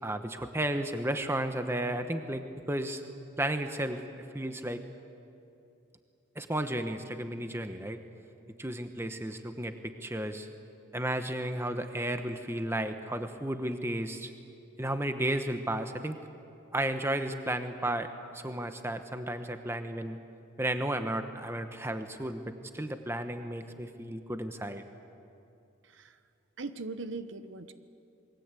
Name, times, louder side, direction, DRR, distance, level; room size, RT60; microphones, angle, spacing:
voice 1, 0.0-3.0 3.4-4.8 6.3-8.0 8.6-10.5 10.9-14.3 14.8-16.2 16.7-18.1 18.3-20.2 20.6-24.8, right 1 dB, 10° right, 7 dB, 1.0 m, -33 dB
voice 2, 25.9-26.2 26.6-27.7, right 3 dB, 55° right, 10 dB, 1.0 m, -40 dB
27.5 x 22.0 x 8.3 m, 2.6 s
head